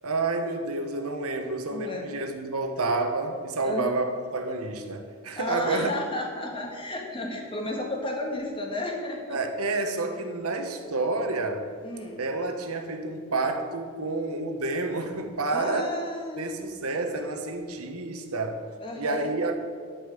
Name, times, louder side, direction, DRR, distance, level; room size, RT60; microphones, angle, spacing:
voice 1, 0.0-6.0 9.3-11.7 12.2-15.9 16.4-18.7 19.0-19.6, right 3 dB, 85° right, 5 dB, 1.3 m, -29 dB
voice 2, 1.7-2.2 3.6-3.9 5.4-9.4 11.8-12.2 15.5-16.5 18.8-19.3, left 1 dB, 25° left, 0 dB, 1.8 m, -33 dB
12.5 x 5.6 x 8.3 m, 2.1 s
head